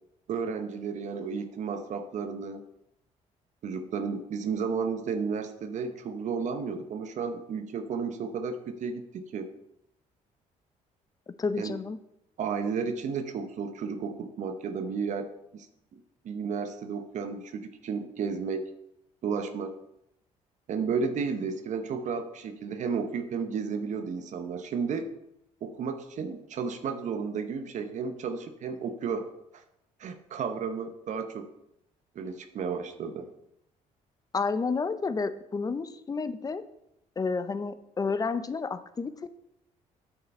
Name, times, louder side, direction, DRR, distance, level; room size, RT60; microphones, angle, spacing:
voice 1, 0.3-2.6 3.6-9.5 11.6-11.8 12.4-15.3 15.5-15.7 15.9-16.0 16.2-18.7 19.2-19.7 20.7-25.1 25.6-29.3 29.5-29.6 30.0-31.5 32.1-33.3, right 5 dB, 60° right, 8 dB, 0.8 m, -33 dB
voice 2, 11.4-12.0 34.3-36.6 37.2-39.3, left 4 dB, 25° left, 13 dB, 0.6 m, -30 dB
8.9 x 6.5 x 4.3 m, 0.82 s
cardioid pair, 90°, 14 cm